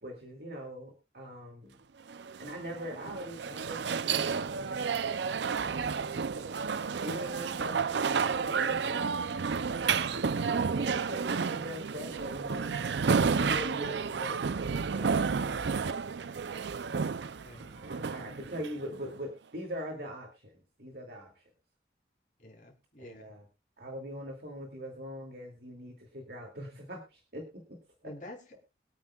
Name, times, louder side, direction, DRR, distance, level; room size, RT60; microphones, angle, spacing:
voice 1, 0.0-1.8 2.4-6.6 6.8-7.8 8.2-9.0 9.8-12.8 13.3-16.3 17.5-21.5 23.0-23.5 23.8-28.1, equal, 65° right, 1 dB, 2.5 m, -43 dB
sound 1, 2.1-19.1, right 5 dB, 85° right, 0.5 m, -31 dB
voice 2, 17.4-17.8 22.4-23.3 28.0-28.6, left 1 dB, 45° left, -1 dB, 3.4 m, -48 dB
23.0 x 8.7 x 2.4 m, 0.27 s
head